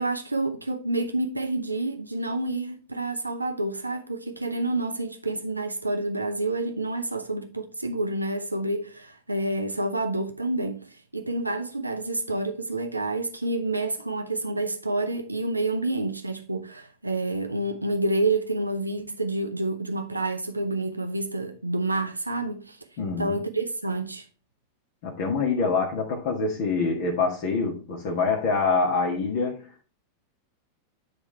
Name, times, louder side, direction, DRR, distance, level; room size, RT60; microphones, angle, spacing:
voice 1, 0.0-22.8 23.2-24.2, right 2 dB, 85° right, 0.7 m, -28 dB
voice 2, 23.0-23.4 25.0-29.8, left 4 dB, 50° left, 1.5 m, -25 dB
10.5 x 3.6 x 4.3 m
figure-of-eight pair, 90°, 0 cm